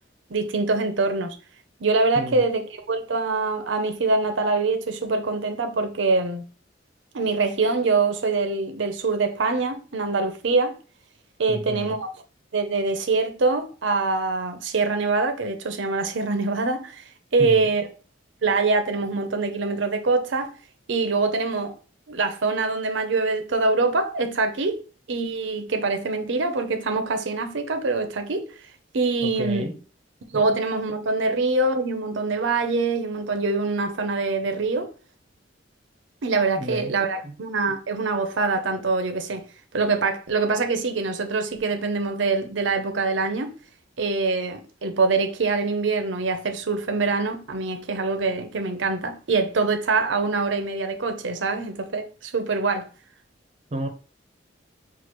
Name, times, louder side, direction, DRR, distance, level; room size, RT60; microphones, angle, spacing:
voice 1, 0.3-1.4 1.8-6.4 7.1-10.8 11.4-12.1 12.5-17.9 18.4-20.5 20.9-21.7 22.1-24.8 25.1-28.5 28.9-29.6 30.3-34.9 36.2-39.5 39.7-43.5 44.0-52.9, right 3 dB, 70° right, 0.6 m, -24 dB
voice 2, 11.5-12.0 17.4-17.7 29.4-29.8 30.3-30.4 36.6-36.9 37.2-37.3 53.7-53.9, right 1 dB, 35° right, 0.7 m, -31 dB
5.8 x 2.4 x 3.0 m
head